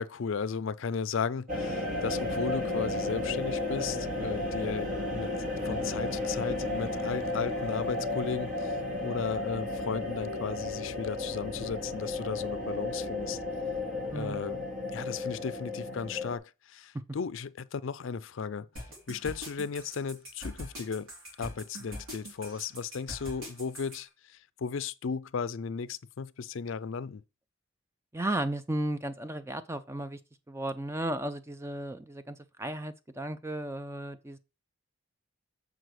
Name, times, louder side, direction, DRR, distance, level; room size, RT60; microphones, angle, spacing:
voice 1, 0.0-5.3 5.6-13.4 14.1-14.6 14.9-18.7 19.1-21.1 21.4-27.2, left 5 dB, 65° left, 0.4 m, -35 dB
sound 1, 1.5-16.4, left 2 dB, 40° right, 1.8 m, -33 dB
voice 2, 14.1-14.4 28.1-30.2 30.5-34.4, right 1 dB, 10° right, 0.4 m, -34 dB
sound 2, 18.8-24.0, equal, 80° right, 3.7 m, -42 dB
7.7 x 4.9 x 4.8 m
head